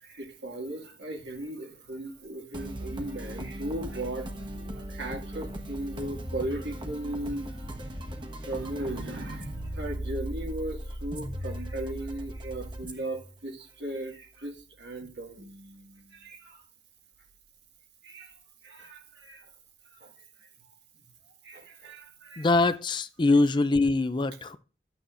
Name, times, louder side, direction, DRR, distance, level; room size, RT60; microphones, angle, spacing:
voice 1, 0.0-7.5 8.4-9.5 9.8-16.6 18.0-18.3 18.6-19.4 20.0-20.1 21.4-22.5, right 1 dB, 70° right, 2.0 m, -37 dB
sound 1, 2.5-15.9, right 1 dB, 25° right, 1.3 m, -39 dB
voice 2, 22.4-24.6, left 3 dB, 25° left, 0.4 m, -23 dB
12.5 x 9.0 x 2.5 m
head